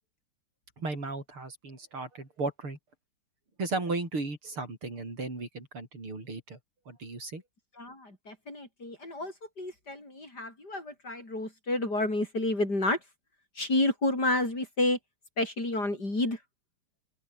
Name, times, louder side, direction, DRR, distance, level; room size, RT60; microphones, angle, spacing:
voice 1, 0.8-2.8 3.6-6.6 6.9-7.4, right 3 dB, 90° right, 7.3 m, -35 dB
voice 2, 7.8-13.0 13.6-15.0 15.4-16.4, left 2 dB, 50° left, 8.4 m, -30 dB
open air
omnidirectional pair, 2.3 m